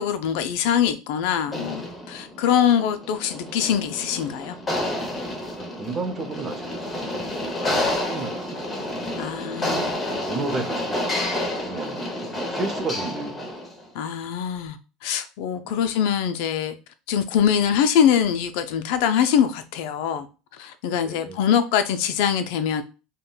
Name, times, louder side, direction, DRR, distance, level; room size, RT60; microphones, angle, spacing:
voice 1, 0.0-4.6 7.6-7.9 9.2-9.9 13.9-16.7 17.1-20.3 20.6-22.8, left 8 dB, 75° left, 0.4 m, -23 dB
sound 1, 1.5-13.8, left 1 dB, 20° left, 0.8 m, -29 dB
voice 2, 5.6-6.7 6.9-8.7 9.1-9.6 10.2-13.5 15.6-15.8 21.0-21.4, right 3 dB, 30° right, 0.6 m, -33 dB
3.6 x 2.1 x 2.2 m
supercardioid pair, 105°, 0 cm